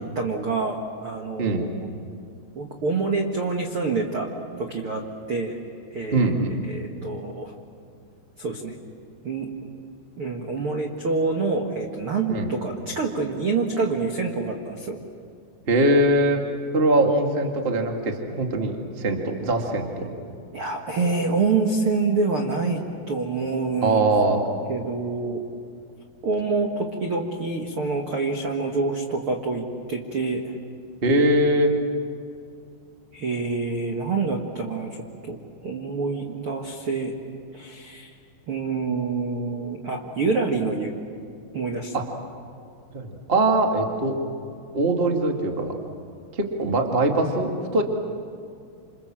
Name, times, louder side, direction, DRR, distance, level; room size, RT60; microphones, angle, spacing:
voice 1, 0.1-1.7 2.5-4.3 4.6-5.0 5.3-5.6 5.9-6.3 6.6-7.5 8.4-8.7 9.2-9.5 10.2-15.0 20.5-22.8 23.1-24.0 24.7-25.4 26.2-29.6 29.9-30.5 33.1-35.4 35.6-37.1 37.5-38.1 38.5-40.9 41.5-41.9, right 4 dB, 70° right, 1 dB, 1.3 m, -26 dB
voice 2, 6.1-6.5 12.3-12.5 15.7-16.4 16.7-20.1 23.8-24.4 31.0-31.7 41.9-42.0 42.9-44.2 44.7-45.7 46.3-47.8, right 2 dB, 35° right, 2 dB, 0.8 m, -22 dB
28.0 x 27.5 x 7.5 m, 2.3 s
omnidirectional pair, 5.3 m